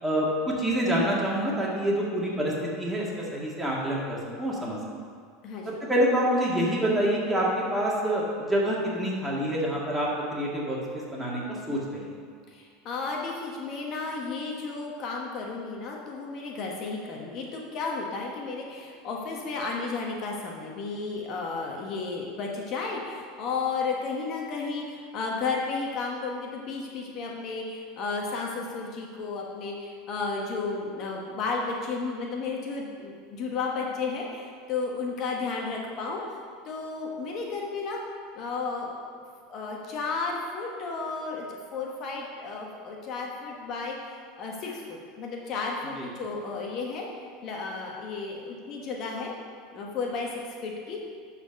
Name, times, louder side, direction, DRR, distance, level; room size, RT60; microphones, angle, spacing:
voice 1, 0.0-4.8 5.8-11.4 11.7-12.1 46.0-46.1, equal, 10° right, -5 dB, 2.1 m, -27 dB
voice 2, 5.4-5.8 12.5-38.0 38.3-39.0 39.5-47.1 47.4-49.3 49.7-51.0, left 4 dB, 50° left, -1 dB, 1.2 m, -33 dB
11.0 x 4.3 x 5.3 m, 2.1 s
supercardioid pair, 115°, 0 cm